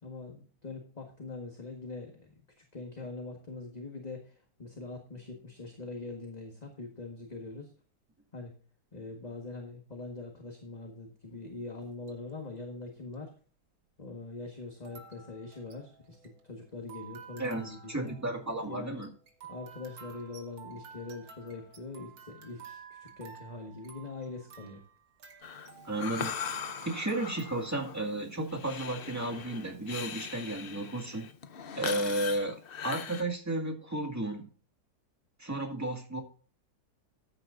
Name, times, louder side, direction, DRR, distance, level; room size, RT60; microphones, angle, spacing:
voice 1, 0.0-7.7 8.3-8.5 8.9-13.3 14.0-18.1 18.6-19.0 19.4-24.8, left 3 dB, 25° left, 2 dB, 1.6 m, -43 dB
sound 1, 11.8-12.3 13.1-13.2 14.8-27.5, right 7 dB, 85° right, 2.4 m, -52 dB
voice 2, 17.4-19.1 25.8-26.3 26.8-31.3 31.7-34.5 35.4-36.2, right 2 dB, 10° right, 2 dB, 2.0 m, -33 dB
Breathing, 25.4-33.2, left 7 dB, 65° left, 0.5 m, -40 dB
14.5 x 9.6 x 2.6 m, 0.41 s
omnidirectional pair, 2.0 m